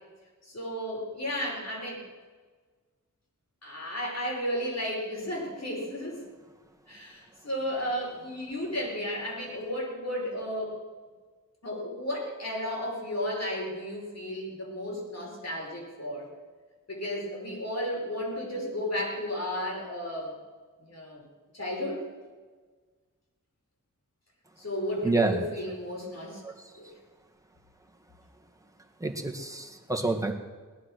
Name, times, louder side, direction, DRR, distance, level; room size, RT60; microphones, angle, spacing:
voice 1, 0.4-2.0 3.6-6.2 6.9-10.8 11.6-16.3 16.9-20.4 20.8-21.2 21.5-22.0 24.6-26.4 26.8-26.9, equal, 55° left, -2 dB, 5.2 m, -33 dB
voice 2, 25.0-25.5 26.4-26.7 29.0-30.3, right 3 dB, 10° right, 2 dB, 2.0 m, -28 dB
18.0 x 11.5 x 6.4 m, 1.4 s
wide cardioid pair, 85°, 32 cm